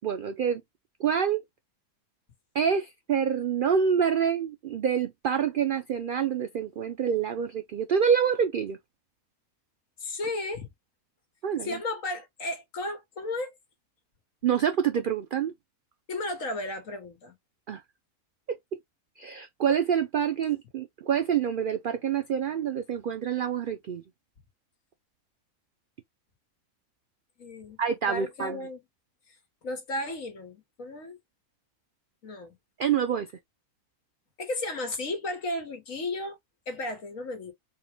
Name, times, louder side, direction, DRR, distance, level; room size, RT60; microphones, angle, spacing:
voice 1, 0.0-0.6 1.0-1.4 2.5-8.8 11.4-11.7 14.4-15.5 17.7-17.8 18.5-18.6 19.2-24.0 27.8-28.6 32.8-33.3, right 7 dB, 90° right, 0.4 m, -26 dB
voice 2, 10.0-10.7 11.6-13.5 16.1-17.4 27.4-27.8 28.1-28.8 29.3-29.4 29.6-31.2 32.2-32.6 34.4-36.4 36.7-37.5, left 2 dB, 65° left, 1.7 m, -34 dB
4.3 x 2.2 x 3.4 m
omnidirectional pair, 1.5 m